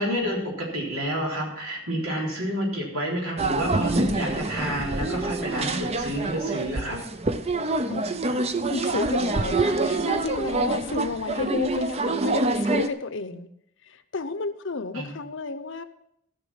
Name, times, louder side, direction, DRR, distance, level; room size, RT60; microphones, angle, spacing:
voice 1, 0.0-7.0 14.9-15.1, equal, 90° right, -2 dB, 3.7 m, -29 dB
sound 1, 3.4-12.9, right 2 dB, 30° right, 0.5 m, -26 dB
voice 2, 7.9-8.4 8.7-13.5 13.8-15.8, left 3 dB, 60° left, 11 dB, 0.7 m, -32 dB
14.5 x 6.2 x 5.8 m, 0.76 s
head